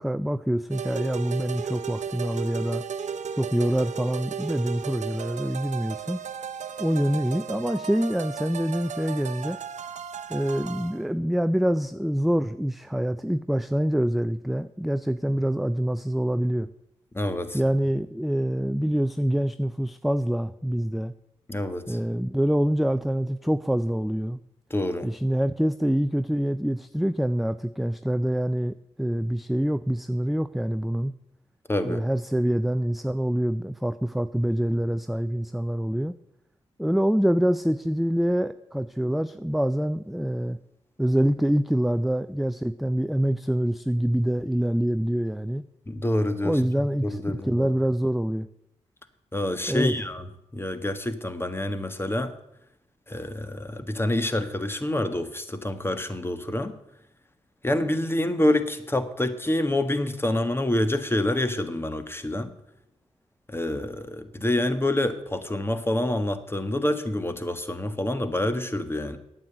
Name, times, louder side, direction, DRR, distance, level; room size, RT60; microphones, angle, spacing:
voice 1, 0.0-2.8 3.4-6.2 6.8-9.6 10.3-16.7 17.5-21.1 21.9-24.4 25.0-31.1 31.8-36.1 36.8-40.6 41.0-45.6 46.4-48.5 49.7-49.9, equal, ahead, 12 dB, 0.5 m, -25 dB
sound 1, 0.7-11.0, right 7 dB, 70° right, 0.8 m, -35 dB
voice 2, 17.1-17.6 21.5-22.0 24.7-25.1 31.7-32.0 45.9-46.6 47.0-47.7 49.3-50.3 50.5-52.3 53.1-56.7 57.6-62.5 63.5-69.2, left 1 dB, 20° left, 10 dB, 1.5 m, -27 dB
9.1 x 7.8 x 8.8 m, 0.84 s
supercardioid pair, 45°, 13 cm